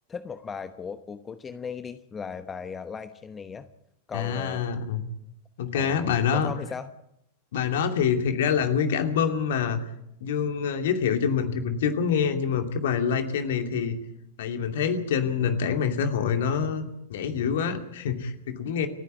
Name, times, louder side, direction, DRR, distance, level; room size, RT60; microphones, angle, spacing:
voice 1, 0.1-3.7 4.1-4.6 5.7-6.9, left 6 dB, 20° left, 11 dB, 1.0 m, -37 dB
voice 2, 4.1-5.0 5.6-6.5 7.5-9.8 10.2-14.0 14.4-18.9, left 7 dB, 55° left, 6 dB, 2.5 m, -26 dB
29.5 x 10.5 x 9.5 m, 0.78 s
figure-of-eight pair, 90°, 0 cm